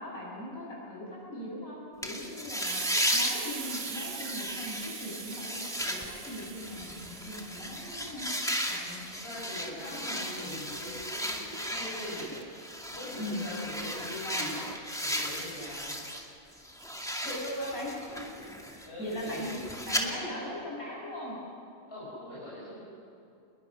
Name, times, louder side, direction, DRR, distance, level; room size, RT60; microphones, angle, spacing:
voice 1, 0.0-2.8 3.1-8.3 8.7-9.0 9.8-10.5 13.2-13.5 14.2-14.5 15.5-15.6 17.2-18.4 18.7-19.5 19.8-21.4, left 1 dB, 65° left, -4 dB, 7.5 m, -39 dB
sound 1, 2.0-16.2 16.6-20.0, equal, ahead, 2.1 m, -35 dB
Hiss, 2.7-10.1, right 7 dB, 70° right, 1.4 m, -42 dB
voice 2, 9.2-14.6 15.0-16.0 16.7-17.1 17.8-17.9 18.8-19.6 21.9-22.8, left 1 dB, 40° left, -9 dB, 6.4 m, -42 dB
27.5 x 21.5 x 6.3 m, 2.6 s
omnidirectional pair, 1.6 m